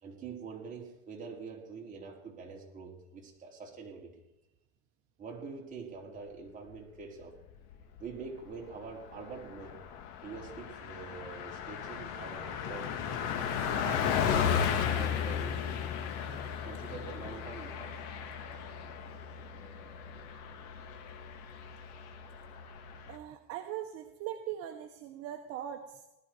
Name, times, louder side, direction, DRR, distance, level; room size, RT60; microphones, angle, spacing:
voice 1, 0.0-4.1 5.2-7.3 8.0-9.8 10.2-12.9 13.7-15.8 16.6-17.9, right 5 dB, 25° right, -2 dB, 4.3 m, -45 dB
Car passing by, 7.5-8.1 8.5-8.6 8.9-23.2, left 8 dB, 60° left, 2.1 m, -35 dB
voice 2, 23.1-26.1, right 11 dB, 50° right, 4 dB, 1.4 m, -41 dB
19.0 x 12.5 x 4.7 m, 0.95 s
supercardioid pair, 135°, 30 cm